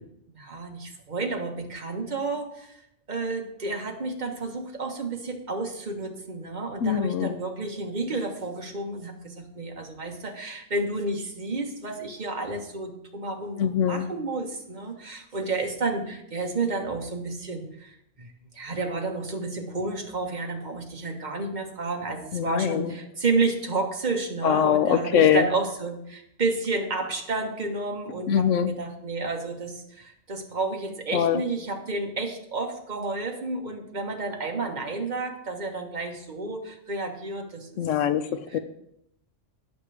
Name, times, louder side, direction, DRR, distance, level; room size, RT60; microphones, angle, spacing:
voice 1, 0.0-2.8 3.1-37.7 38.2-38.6, right 3 dB, 40° right, 3 dB, 1.5 m, -31 dB
voice 2, 6.8-7.3 13.6-14.0 22.3-23.0 24.4-25.5 28.3-28.7 31.1-31.4 37.8-38.6, left 9 dB, 90° left, 11 dB, 1.0 m, -23 dB
17.0 x 6.7 x 3.4 m, 0.75 s
omnidirectional pair, 1.2 m